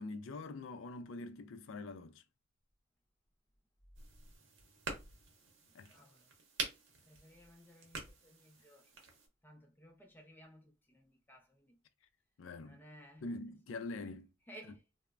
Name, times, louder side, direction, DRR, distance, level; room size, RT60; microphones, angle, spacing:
voice 1, 0.0-2.2 5.7-5.9 12.4-12.8 13.2-14.3, left 3 dB, 75° left, 0.4 m, -44 dB
sound 1, 3.9-9.3, right 4 dB, 60° right, 0.8 m, -46 dB
voice 2, 5.9-6.3 7.1-8.9 9.4-11.7 12.6-13.3 14.5-14.8, equal, 10° left, 0.5 m, -58 dB
3.1 x 2.0 x 2.4 m
head